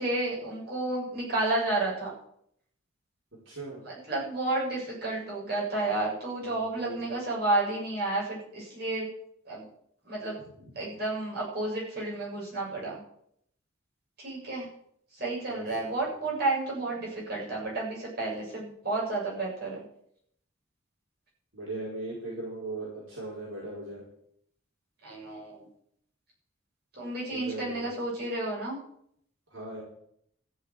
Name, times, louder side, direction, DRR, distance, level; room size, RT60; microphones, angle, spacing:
voice 1, 0.0-2.1 3.8-9.1 9.5-9.7 10.1-10.4 10.8-13.0 14.2-14.7 15.1-19.8 25.0-25.7 27.0-28.8, right 2 dB, 50° right, -5 dB, 7.3 m, -31 dB
voice 2, 3.5-3.8 6.5-7.0 15.5-15.7 16.0-16.1 21.5-24.0 27.3-27.8 29.5-29.8, right 2 dB, 70° right, -5 dB, 5.1 m, -38 dB
14.5 x 6.5 x 9.3 m, 0.71 s
head